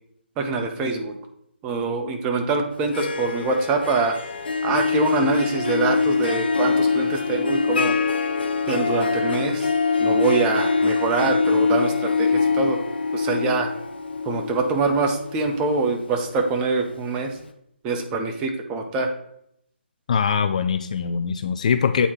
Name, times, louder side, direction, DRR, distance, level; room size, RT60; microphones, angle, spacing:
voice 1, 0.4-1.2 1.6-4.2 4.6-8.0 8.7-9.7 10.0-12.8 13.1-13.7 14.3-17.3 17.8-19.1, right 4 dB, 15° right, 4 dB, 0.5 m, -24 dB
Harp, 2.7-16.7, left 4 dB, 60° left, 0.7 m, -24 dB
voice 2, 20.1-22.1, left 6 dB, 35° left, 9 dB, 0.3 m, -22 dB
8.4 x 2.9 x 4.3 m, 0.74 s
figure-of-eight pair, 150°, 6 cm